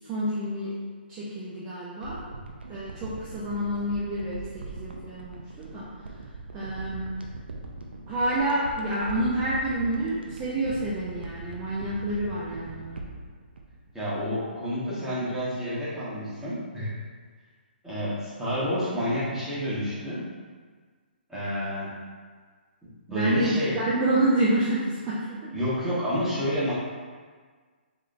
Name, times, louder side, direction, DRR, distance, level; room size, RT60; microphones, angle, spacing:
voice 1, 0.1-0.7 1.1-2.3 2.7-5.9 6.5-7.1 8.1-13.0 23.1-25.5, right 1 dB, 25° right, -8 dB, 0.6 m, -28 dB
sound 1, 2.0-14.5 14.8-14.9, right 2 dB, 70° right, 0.5 m, -41 dB
voice 2, 13.9-16.9 17.8-20.2 21.3-21.9 22.8-23.7 25.5-26.7, equal, 5° right, -12 dB, 1.4 m, -29 dB
3.7 x 3.3 x 2.5 m, 1.5 s
figure-of-eight pair, 135°, 6 cm